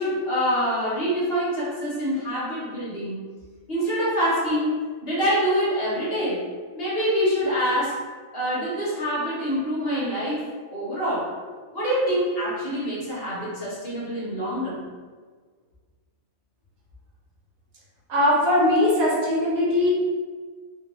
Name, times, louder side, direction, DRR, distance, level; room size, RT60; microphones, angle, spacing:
voice 1, 0.0-3.2 3.7-6.4 6.7-8.0 8.3-11.3 11.7-14.8, equal, 50° left, -8 dB, 1.2 m, -25 dB
voice 2, 18.1-19.9, left 1 dB, 80° right, -5 dB, 1.4 m, -20 dB
3.5 x 2.5 x 3.0 m, 1.5 s
omnidirectional pair, 1.5 m